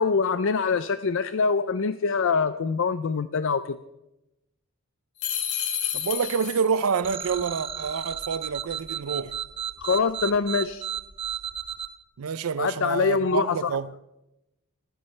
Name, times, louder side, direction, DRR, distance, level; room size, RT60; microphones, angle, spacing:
voice 1, 0.0-3.8 9.8-10.8 12.6-13.7, left 5 dB, 60° left, 0.5 m, -24 dB
sound 1, 5.2-6.9, left 9 dB, 80° left, 2.4 m, -30 dB
voice 2, 5.9-9.3 12.2-13.9, right 6 dB, 80° right, 0.5 m, -27 dB
sound 2, 7.0-11.9, right 8 dB, 25° right, 0.9 m, -33 dB
28.0 x 10.0 x 3.3 m
head